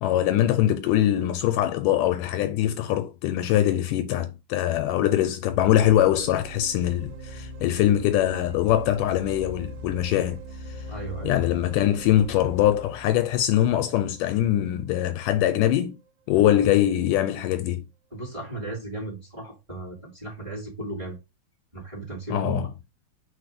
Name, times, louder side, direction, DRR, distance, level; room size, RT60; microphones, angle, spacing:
voice 1, 0.0-10.4 11.2-16.0 16.3-17.9 22.3-22.7, left 12 dB, 80° left, 2.0 m, -22 dB
sound 1, 5.5-15.3, right 1 dB, 90° right, 2.4 m, -41 dB
voice 2, 10.9-11.4 18.1-21.2 21.7-22.7, right 3 dB, 10° right, 2.3 m, -35 dB
4.7 x 4.2 x 5.1 m
omnidirectional pair, 3.9 m